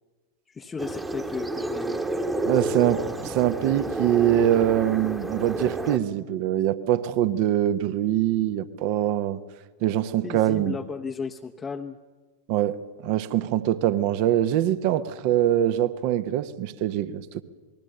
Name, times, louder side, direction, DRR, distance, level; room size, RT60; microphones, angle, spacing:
voice 1, 0.5-2.0 10.2-12.0, left 5 dB, 15° left, 0.8 m, -34 dB
sound 1, 0.8-6.0, right 2 dB, 10° right, 1.3 m, -30 dB
voice 2, 2.4-9.4 9.8-10.8 12.5-17.4, right 12 dB, 45° right, 1.0 m, -23 dB
27.5 x 20.5 x 6.7 m
figure-of-eight pair, 90°, 0 cm